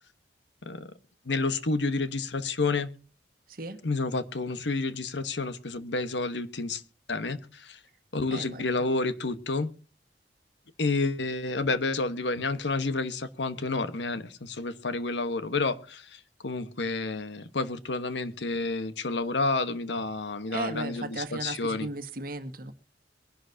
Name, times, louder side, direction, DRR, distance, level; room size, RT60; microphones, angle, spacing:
voice 1, 1.2-2.9 3.8-6.8 7.1-7.8 8.1-9.7 10.8-21.9, left 3 dB, 80° left, 1.2 m, -30 dB
voice 2, 3.5-3.8 8.3-8.7 20.5-22.7, right 2 dB, 55° right, 1.5 m, -36 dB
23.0 x 11.5 x 2.7 m
head